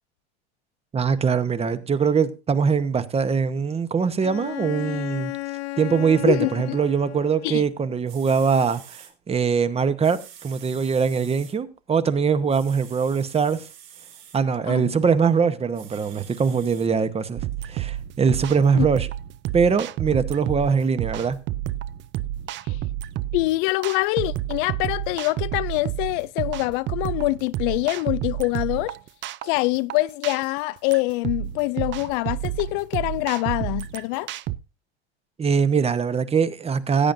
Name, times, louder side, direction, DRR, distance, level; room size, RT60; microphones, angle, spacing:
voice 1, 0.9-5.3 5.8-13.7 14.3-19.1 19.5-21.4 35.4-37.1, right 6 dB, 20° right, 0.9 m, -22 dB
Bowed string instrument, 4.2-7.7, left 20 dB, 70° left, 0.9 m, -34 dB
sound 1, 7.8-7.9 8.1-9.1 10.0-11.5 12.5-14.4 15.7-16.9 17.5-17.6, right 9 dB, 75° right, 3.9 m, -47 dB
voice 2, 14.7-15.0 18.7-18.9 22.6-22.8 23.3-29.0 29.4-34.3, left 21 dB, 55° left, 0.4 m, -25 dB
sound 2, 17.4-34.6, right 13 dB, 35° right, 0.5 m, -30 dB
16.5 x 8.7 x 2.6 m
hypercardioid pair, 110°, 32 cm